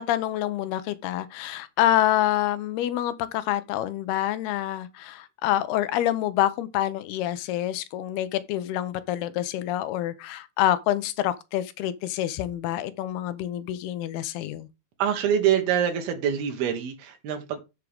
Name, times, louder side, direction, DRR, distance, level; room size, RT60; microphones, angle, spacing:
voice 1, 0.0-14.7, left 13 dB, 90° left, 2.9 m, -27 dB
voice 2, 15.0-17.6, right 9 dB, 80° right, 3.2 m, -25 dB
12.5 x 6.4 x 3.5 m
omnidirectional pair, 4.4 m